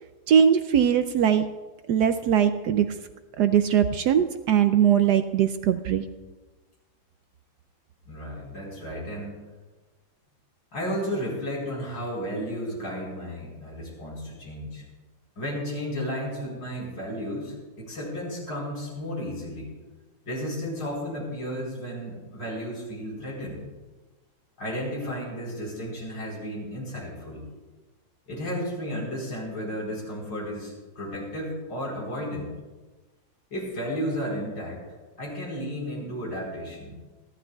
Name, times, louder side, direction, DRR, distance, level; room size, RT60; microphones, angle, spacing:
voice 1, 0.3-1.4 1.9-2.9 3.4-6.0, right 8 dB, 70° right, 9 dB, 1.0 m, -21 dB
voice 2, 8.0-9.4 10.7-14.8 15.4-19.7 20.2-23.6 24.6-27.5 28.3-32.5 33.5-34.8 35.2-37.0, equal, 70° left, -3 dB, 5.0 m, -33 dB
28.0 x 12.0 x 2.3 m, 1.2 s
omnidirectional pair, 2.1 m